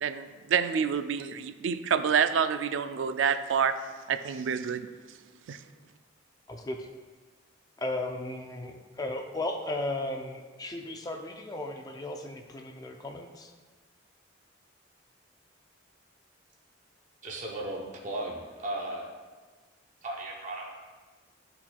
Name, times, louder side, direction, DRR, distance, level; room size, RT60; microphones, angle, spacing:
voice 1, 0.0-3.8 4.1-4.9 5.5-5.6, right 7 dB, 70° right, 10 dB, 0.4 m, -27 dB
voice 2, 6.5-6.9 7.8-13.5, left 2 dB, 20° left, 3 dB, 0.4 m, -35 dB
voice 3, 17.2-19.1 20.0-20.7, right 1 dB, 35° right, -2 dB, 0.7 m, -36 dB
11.5 x 4.3 x 2.3 m, 1.4 s
head